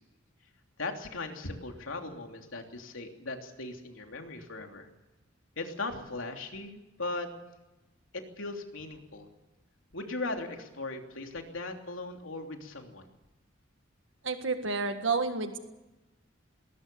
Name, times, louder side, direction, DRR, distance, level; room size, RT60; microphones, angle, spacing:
voice 1, 0.8-4.9 5.6-7.3 8.1-9.3 9.9-13.1, left 2 dB, 90° left, 3 dB, 3.2 m, -38 dB
voice 2, 14.2-15.6, right 4 dB, 70° right, 7 dB, 1.7 m, -30 dB
20.0 x 19.5 x 7.0 m, 1.0 s
head